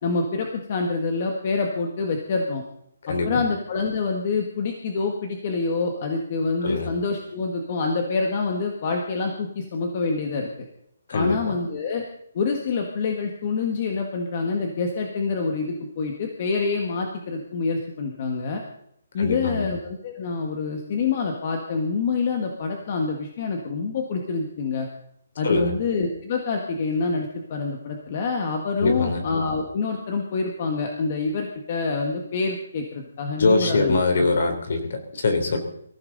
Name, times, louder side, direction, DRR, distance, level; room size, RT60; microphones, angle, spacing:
voice 1, 0.0-2.6 3.1-10.5 11.1-12.0 12.3-18.6 19.1-24.9 25.4-34.2, left 4 dB, 30° left, 2 dB, 1.6 m, -26 dB
voice 2, 3.1-3.4 6.6-6.9 11.1-11.5 19.2-19.7 25.4-25.7 28.8-29.2 33.4-35.6, left 3 dB, 50° left, 6 dB, 3.4 m, -23 dB
24.0 x 15.0 x 4.0 m, 0.71 s
hypercardioid pair, 180°, 0 cm